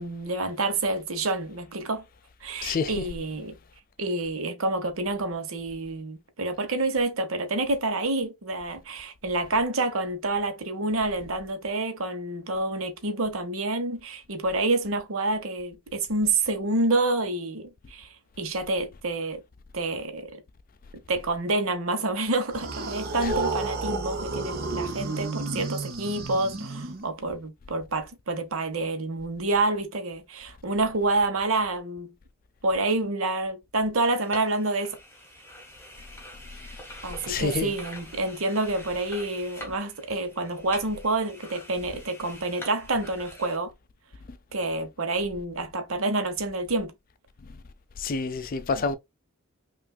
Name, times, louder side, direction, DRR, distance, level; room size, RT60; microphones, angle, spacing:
voice 1, 0.0-2.0 2.4-3.5 4.0-19.4 19.7-20.4 21.1-32.1 32.6-35.0 37.0-43.7 44.5-46.9 48.8-48.9, right 2 dB, 75° right, 1.0 m, -28 dB
voice 2, 2.6-3.0 23.2-23.3 37.3-37.7 48.0-49.0, left 4 dB, 40° left, 0.4 m, -28 dB
sound 1, 22.5-27.3, right 3 dB, 45° right, 0.9 m, -31 dB
sound 2, 34.0-43.6, left 1 dB, 10° left, 1.0 m, -45 dB
5.7 x 2.5 x 2.3 m
head